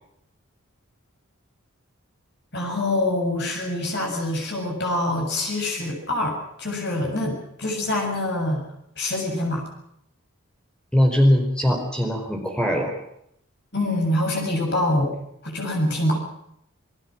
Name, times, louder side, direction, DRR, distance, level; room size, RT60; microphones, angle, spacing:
voice 1, 2.5-8.6 9.0-9.6 13.7-15.1 15.4-16.2, left 1 dB, 50° left, 1 dB, 7.3 m, -25 dB
voice 2, 10.9-12.9, equal, 5° left, 2 dB, 4.9 m, -20 dB
28.5 x 19.0 x 6.1 m, 0.74 s
head